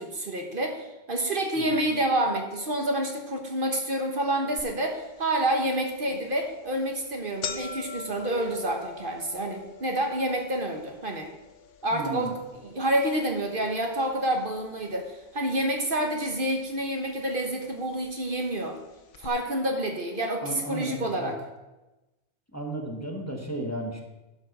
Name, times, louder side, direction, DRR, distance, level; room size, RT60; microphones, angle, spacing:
voice 1, 0.0-11.3 11.8-18.8 19.2-21.4, right 1 dB, 50° right, 3 dB, 1.3 m, -28 dB
sound 1, 4.6-4.7 5.2-5.3 6.1-6.3 6.7-6.8 7.0-15.2 15.5-16.3 17.1-17.2 18.1-18.2 18.5-18.6 19.1-19.3, left 6 dB, 90° left, 1.2 m, -43 dB
voice 2, 11.9-12.4 20.4-21.3 22.5-24.0, right 2 dB, 15° left, 1 dB, 1.2 m, -34 dB
12.0 x 5.2 x 6.6 m, 1.1 s
omnidirectional pair, 1.2 m